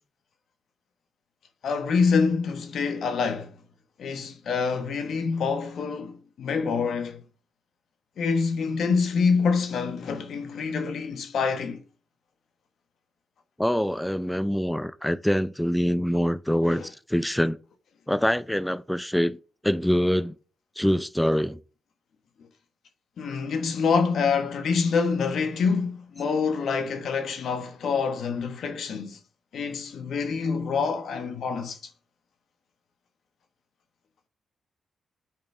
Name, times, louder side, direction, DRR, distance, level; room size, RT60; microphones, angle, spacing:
voice 1, 1.6-3.5 4.0-7.2 8.2-11.8 16.6-16.9 23.2-29.2 29.5-31.8, left 5 dB, 70° left, 1.3 m, -26 dB
voice 2, 13.6-17.6 18.1-19.4 19.6-20.3 20.8-21.6, equal, 5° left, 0.5 m, -24 dB
8.9 x 5.2 x 3.4 m
supercardioid pair, 50°, 0 cm